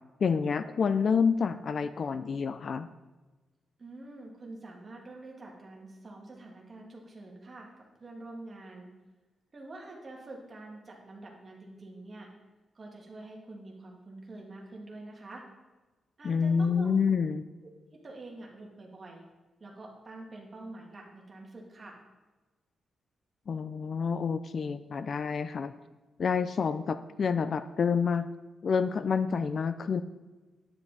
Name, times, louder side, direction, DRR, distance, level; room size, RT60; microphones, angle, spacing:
voice 1, 0.2-2.9 16.2-17.4 23.5-25.7 26.2-28.3 28.6-30.0, left 6 dB, 40° left, 12 dB, 0.3 m, -28 dB
voice 2, 3.8-8.9 9.5-12.3 12.7-15.4 16.2-17.2 17.9-19.3 19.6-22.0, right 2 dB, 30° right, -1 dB, 1.9 m, -46 dB
9.8 x 9.7 x 4.1 m, 1.2 s
wide cardioid pair, 180°, 0 cm